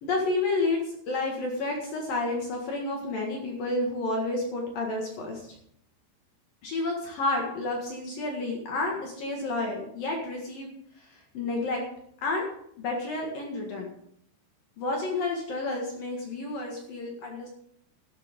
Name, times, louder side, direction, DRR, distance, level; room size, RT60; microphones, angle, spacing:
voice 1, 0.0-5.5 6.6-10.7 11.0-11.8 12.2-12.5 12.8-13.9 14.8-17.5, left 2 dB, 55° left, 0 dB, 2.9 m, -30 dB
13.5 x 12.0 x 3.7 m, 0.69 s
omnidirectional pair, 5.7 m